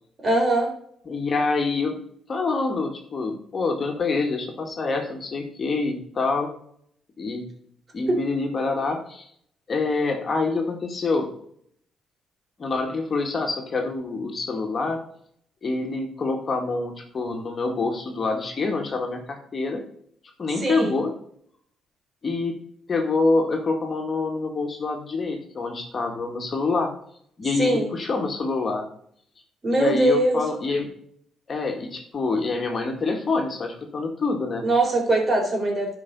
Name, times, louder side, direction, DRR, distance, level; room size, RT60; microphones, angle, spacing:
voice 1, 0.2-0.7 8.1-8.2 20.6-20.9 27.6-27.9 29.6-30.4 34.6-35.9, right 1 dB, 35° right, 1 dB, 4.1 m, -21 dB
voice 2, 1.1-1.9 2.3-6.5 7.2-7.5 7.9-9.3 9.7-11.3 12.6-15.0 15.6-19.8 20.4-21.1 22.2-22.6 22.9-26.9 27.4-28.9 29.7-30.9 31.5-34.7, left 3 dB, 40° left, 3 dB, 2.1 m, -26 dB
11.0 x 5.3 x 5.4 m, 0.65 s
cardioid pair, 90°, 0 cm